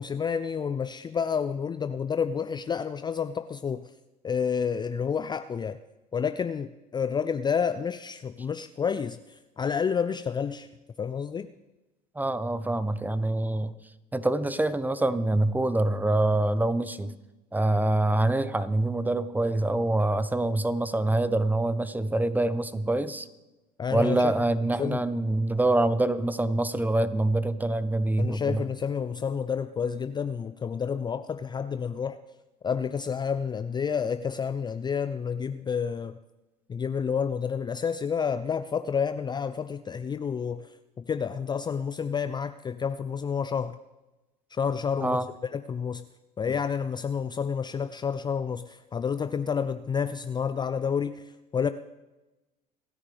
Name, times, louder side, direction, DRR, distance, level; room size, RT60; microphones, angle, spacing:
voice 1, 0.0-3.9 4.2-5.8 6.1-10.7 11.0-11.5 23.8-24.4 24.8-25.0 28.2-32.2 32.6-36.2 36.7-43.8 44.5-45.2 45.5-46.1 46.4-51.7, left 6 dB, 20° left, 12 dB, 0.5 m, -29 dB
voice 2, 12.1-13.7 14.1-17.1 17.5-23.3 23.9-28.6 45.0-45.3, right 2 dB, 10° right, 14 dB, 0.9 m, -25 dB
27.0 x 9.8 x 3.4 m, 1.1 s
hypercardioid pair, 75°, 20 cm